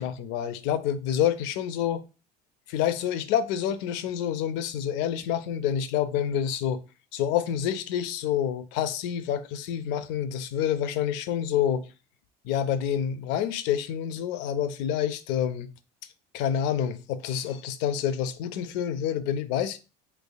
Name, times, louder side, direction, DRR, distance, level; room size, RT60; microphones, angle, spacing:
voice 1, 0.0-2.0 2.7-6.8 7.1-11.9 12.4-15.7 16.3-19.8, left 9 dB, 75° left, 0.5 m, -28 dB
3.3 x 3.3 x 2.2 m
supercardioid pair, 110°, 19 cm